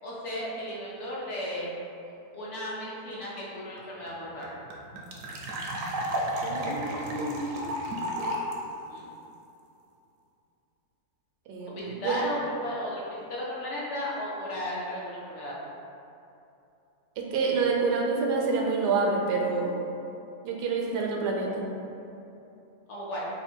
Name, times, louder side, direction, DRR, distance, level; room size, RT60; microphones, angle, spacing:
voice 1, 0.0-1.7 2.3-4.5 8.9-9.1 11.7-13.0 13.3-15.5 22.9-23.3, left 1 dB, 60° left, -6 dB, 0.8 m, -34 dB
sound 1, 3.8-3.9 4.1-4.2 4.4-8.5, equal, 70° right, 0.8 m, -32 dB
voice 2, 6.4-7.5 11.5-12.2 17.2-19.7 20.4-21.6, right 4 dB, 90° right, -1 dB, 1.2 m, -28 dB
3.5 x 2.2 x 4.3 m, 2.7 s
omnidirectional pair, 1.7 m